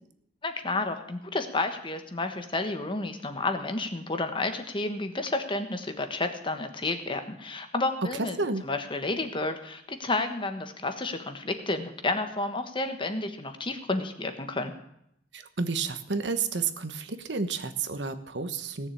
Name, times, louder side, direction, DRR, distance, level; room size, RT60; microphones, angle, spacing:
voice 1, 0.4-8.4 8.6-14.7, left 2 dB, 30° left, 7 dB, 1.4 m, -31 dB
voice 2, 8.1-8.6 15.3-18.9, right 4 dB, 80° right, 10 dB, 1.2 m, -31 dB
18.0 x 6.8 x 8.7 m, 0.75 s
head